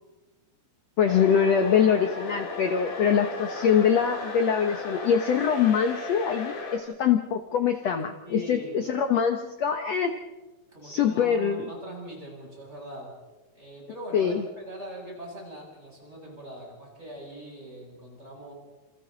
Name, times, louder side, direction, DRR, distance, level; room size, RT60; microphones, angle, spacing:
voice 1, 1.0-10.2 10.8-11.7 14.1-14.4, left 7 dB, 80° left, 6 dB, 1.4 m, -24 dB
sound 1, 1.0-6.8, left 3 dB, 55° left, 4.1 m, -35 dB
voice 2, 8.2-8.8 10.7-13.1 13.5-18.5, equal, 15° right, -3 dB, 8.3 m, -41 dB
29.0 x 28.5 x 4.1 m, 1.1 s
omnidirectional pair, 4.7 m